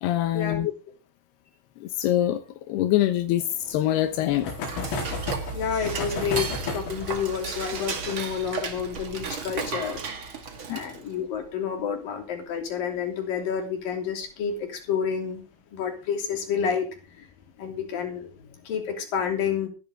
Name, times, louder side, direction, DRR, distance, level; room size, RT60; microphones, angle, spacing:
voice 1, 0.0-0.7 1.8-2.4 2.7-4.5 10.7-10.8, left 13 dB, 70° left, 7 dB, 2.6 m, -24 dB
sound 1, 3.4-12.6 12.9-13.0 13.2-13.3 13.6-13.7 15.1-15.4 16.0-16.5, left 3 dB, 90° left, 7.1 m, -36 dB
Dishes pots and pans / Cutlery silverware, 4.3-11.1, right 5 dB, 70° right, 1.2 m, -34 dB
voice 2, 5.5-10.0 10.7-15.4 15.7-17.3 17.6-19.7, left 7 dB, 50° left, 4 dB, 4.3 m, -29 dB
15.0 x 13.5 x 3.7 m, 0.32 s
omnidirectional pair, 5.9 m